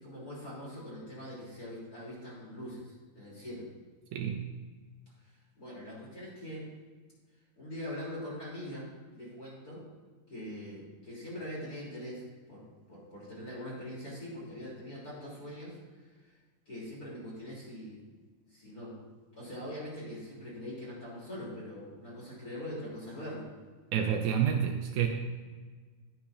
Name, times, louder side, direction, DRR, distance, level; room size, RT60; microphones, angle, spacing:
voice 1, 0.0-3.6 5.6-6.6 7.6-8.9 9.1-9.8 10.3-12.6 12.9-15.8 16.2-16.3 16.7-18.0 18.5-19.0 19.4-23.5, equal, 25° left, -7 dB, 2.8 m, -42 dB
voice 2, 4.1-4.5 23.9-25.1, right 8 dB, 80° right, 3 dB, 2.4 m, -28 dB
12.0 x 10.0 x 2.5 m, 1.4 s
omnidirectional pair, 4.6 m